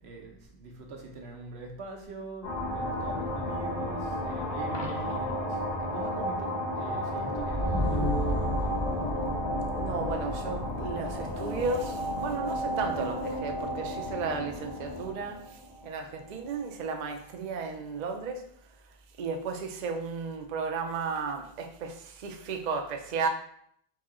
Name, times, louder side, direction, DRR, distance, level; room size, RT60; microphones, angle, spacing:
voice 1, 0.0-8.6, right 3 dB, 85° right, 1.1 m, -43 dB
sound 1, 2.4-16.6, equal, 70° left, 1.7 m, -32 dB
Coin (dropping), 4.6-5.5 11.6-11.8, left 2 dB, 30° left, 0.6 m, -45 dB
voice 2, 9.7-18.5 18.8-23.3, right 4 dB, 50° right, 0.6 m, -34 dB
4.1 x 2.8 x 3.6 m
omnidirectional pair, 1.1 m